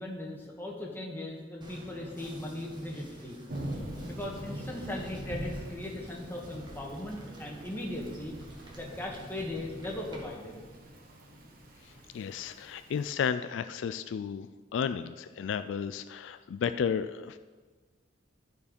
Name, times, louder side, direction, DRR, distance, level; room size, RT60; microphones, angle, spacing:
voice 1, 0.0-3.4 4.1-8.3 8.8-10.6, left 1 dB, 10° left, -2 dB, 1.6 m, -38 dB
sound 1, 1.6-10.2, right 1 dB, 25° right, 1.6 m, -50 dB
Thunder / Rain, 3.5-13.1, right 1 dB, 50° right, 1.4 m, -44 dB
voice 2, 11.8-17.4, left 7 dB, 75° left, 11 dB, 0.3 m, -33 dB
14.0 x 4.7 x 5.2 m, 1.4 s
head